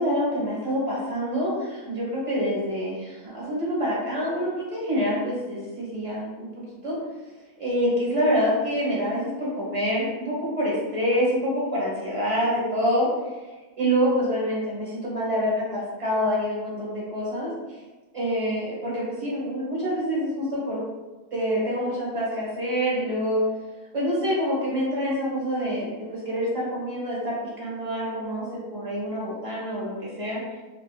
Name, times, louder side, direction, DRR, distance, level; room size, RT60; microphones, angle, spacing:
voice 1, 0.0-6.5 6.8-7.0 7.6-13.1 13.8-17.5 18.1-20.8 21.3-23.4 23.9-30.4, equal, 30° right, -6 dB, 0.9 m, -26 dB
3.2 x 2.7 x 2.2 m, 1.2 s
omnidirectional pair, 1.4 m